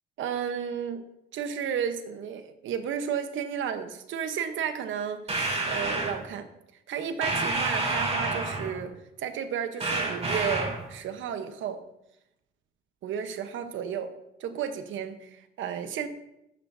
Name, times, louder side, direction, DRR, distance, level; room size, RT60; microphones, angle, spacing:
voice 1, 0.2-1.0 1.3-6.5 6.9-11.8 13.0-14.1 14.4-16.1, right 8 dB, 80° right, 9 dB, 1.0 m, -33 dB
sound 1, 5.3-6.2 7.2-8.8 9.8-10.9, right 2 dB, 30° right, 3.6 m, -29 dB
12.0 x 9.5 x 2.7 m, 0.85 s
cardioid pair, 90°, 20 cm